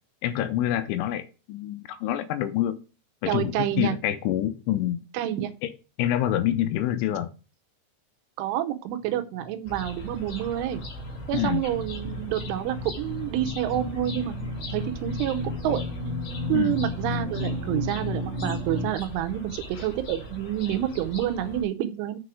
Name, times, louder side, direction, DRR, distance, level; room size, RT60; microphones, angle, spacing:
voice 1, 0.2-2.8 3.2-5.0 5.6-5.7 6.0-7.3 11.3-11.6 16.5-16.8, left 12 dB, 85° left, 11 dB, 3.1 m, -26 dB
voice 2, 3.3-4.0 5.1-5.5 8.4-10.8 11.3-14.4 14.7-15.8 16.5-22.2, right 12 dB, 80° right, 9 dB, 3.2 m, -28 dB
sound 1, 9.1-18.9, left 2 dB, 45° right, 2.6 m, -34 dB
sound 2, 9.7-21.6, left 1 dB, 45° left, 3.4 m, -40 dB
6.8 x 6.2 x 4.8 m, 0.33 s
omnidirectional pair, 5.6 m